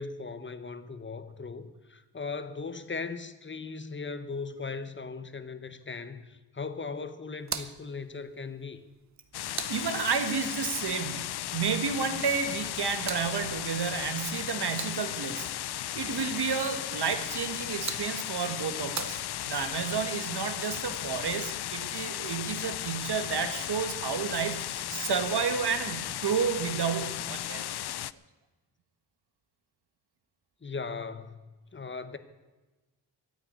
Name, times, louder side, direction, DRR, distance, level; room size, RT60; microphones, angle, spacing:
voice 1, 0.0-8.8 27.8-28.0 30.6-31.4 31.7-32.2, left 4 dB, 30° left, 11 dB, 1.0 m, -38 dB
sound 1, 7.4-10.5 12.5-15.4 17.4-19.8, right 6 dB, 40° right, 0.8 m, -43 dB
sound 2, 9.3-28.1, left 13 dB, 65° left, 0.5 m, -35 dB
voice 2, 9.7-15.5 15.9-27.6, right 6 dB, 70° right, 7 dB, 1.7 m, -31 dB
13.5 x 9.0 x 9.4 m, 1.2 s
wide cardioid pair, 120°, 41 cm